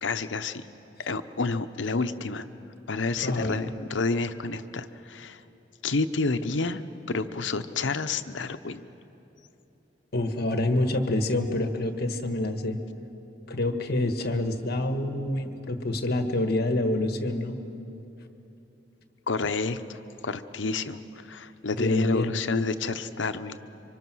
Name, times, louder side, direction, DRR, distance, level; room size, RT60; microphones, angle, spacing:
voice 1, 0.0-0.6 1.0-2.5 2.9-5.4 5.8-6.8 7.1-8.8 19.3-23.6, left 3 dB, 85° left, 10 dB, 0.8 m, -29 dB
voice 2, 3.2-3.6 10.1-12.8 13.5-17.6 21.8-22.4, left 1 dB, 60° left, 7 dB, 1.4 m, -27 dB
26.5 x 25.0 x 6.3 m, 3.0 s
head